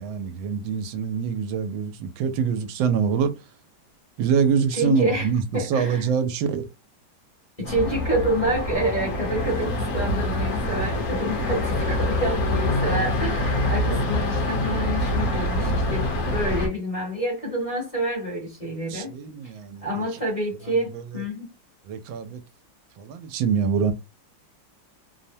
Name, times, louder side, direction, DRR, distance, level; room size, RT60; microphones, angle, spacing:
voice 1, 0.0-3.3 4.2-6.7 18.9-20.0 20.8-21.0 21.9-22.4 23.0-23.9, right 7 dB, 90° right, 1.3 m, -25 dB
voice 2, 4.7-6.1 7.6-19.1 19.8-21.5, right 1 dB, 25° left, 1.0 m, -28 dB
sound 1, 7.6-16.7, left 1 dB, 60° left, 1.2 m, -25 dB
3.3 x 2.0 x 2.7 m
omnidirectional pair, 2.0 m